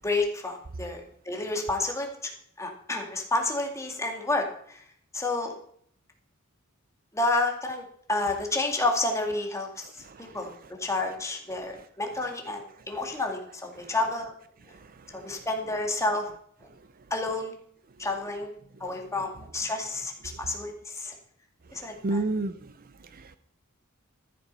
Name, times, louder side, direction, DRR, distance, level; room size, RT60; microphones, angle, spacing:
voice 1, 0.0-2.1 2.6-4.8 5.1-5.5 7.1-10.0 10.3-10.5 10.8-14.3 15.1-16.3 17.1-17.5 18.0-18.5 18.8-21.1 21.7-22.2, left 2 dB, 15° left, 2 dB, 2.2 m, -30 dB
voice 2, 21.9-22.6 23.1-23.4, right 2 dB, 45° right, 12 dB, 0.6 m, -30 dB
13.5 x 7.6 x 5.5 m, 0.63 s
head